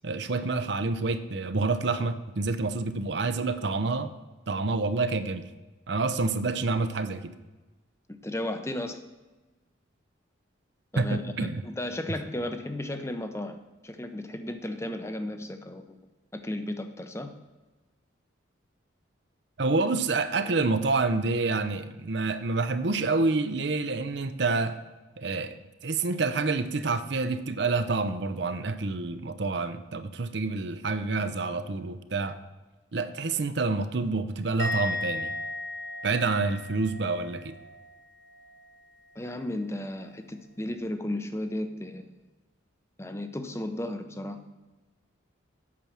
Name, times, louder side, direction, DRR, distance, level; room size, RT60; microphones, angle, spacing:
voice 1, 0.0-4.1 4.5-5.5 5.9-7.3 11.0-11.6 19.6-24.8 25.2-25.5 25.8-32.4 32.9-35.3 36.0-37.5, right 3 dB, 60° right, 10 dB, 0.6 m, -28 dB
voice 2, 8.1-9.0 10.9-16.0 16.3-17.3 39.2-42.2 43.0-44.5, left 1 dB, 15° left, 8 dB, 0.6 m, -34 dB
Musical instrument, 34.6-38.0 38.2-38.7, left 2 dB, 70° left, 2.4 m, -36 dB
8.5 x 6.2 x 7.1 m, 1.2 s
head